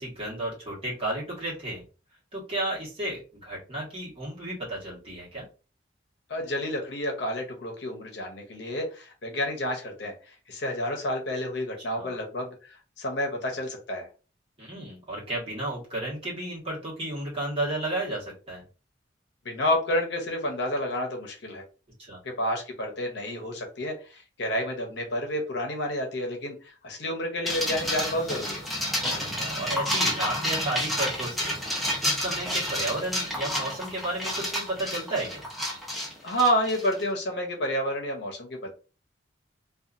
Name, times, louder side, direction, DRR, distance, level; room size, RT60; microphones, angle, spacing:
voice 1, 0.0-1.8 2.3-5.4 11.9-12.2 14.6-18.6 22.0-22.2 29.1-35.4, right 1 dB, 30° right, -5 dB, 1.3 m, -33 dB
voice 2, 6.3-12.5 13.0-14.1 19.4-21.6 22.2-28.6 36.2-38.7, equal, 60° left, 2 dB, 0.7 m, -30 dB
sound 1, 27.5-37.0, left 1 dB, ahead, 0.7 m, -30 dB
2.7 x 2.4 x 2.4 m, 0.35 s
head